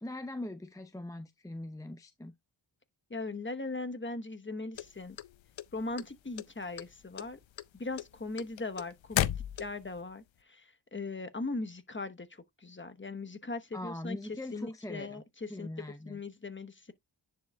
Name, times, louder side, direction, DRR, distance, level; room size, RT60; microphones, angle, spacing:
voice 1, 0.0-2.3 13.7-15.2 15.5-16.2, left 1 dB, 10° left, 0.6 m, -41 dB
voice 2, 3.1-5.2 5.7-7.4 7.7-9.3 9.6-10.2 10.5-12.3 12.6-14.2 14.5-15.7 16.0-16.9, left 3 dB, 25° left, 1.1 m, -39 dB
sound 1, 4.8-6.0 6.4-6.9 7.2-10.0, left 12 dB, 80° left, 0.6 m, -33 dB
10.0 x 5.0 x 2.3 m
cardioid pair, 55°, 45 cm